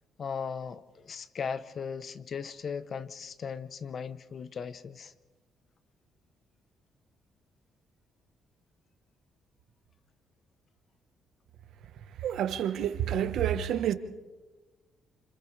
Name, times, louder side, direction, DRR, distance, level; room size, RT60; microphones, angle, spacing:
voice 1, 0.2-5.1, left 6 dB, 50° left, 14 dB, 0.9 m, -37 dB
voice 2, 12.2-13.9, right 10 dB, 75° right, 9 dB, 1.2 m, -28 dB
29.5 x 27.5 x 3.3 m, 1.2 s
cardioid pair, 90°, 0 cm